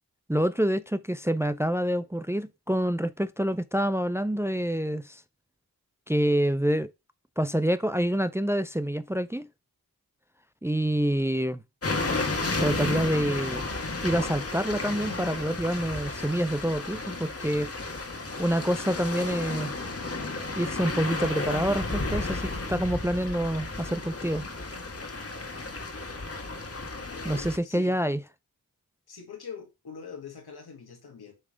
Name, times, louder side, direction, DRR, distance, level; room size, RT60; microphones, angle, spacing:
voice 1, 0.3-5.2 6.1-6.9 7.4-9.5 10.6-11.6 12.6-13.6 14.0-17.7 18.4-19.7 20.6-24.4 27.2-28.2, right 1 dB, 5° right, 0.4 m, -27 dB
sound 1, 11.8-27.6, left 3 dB, 40° left, 1.4 m, -33 dB
voice 2, 27.1-28.0 29.1-31.3, left 6 dB, 85° left, 1.8 m, -43 dB
7.2 x 3.4 x 4.8 m
cardioid pair, 50°, 37 cm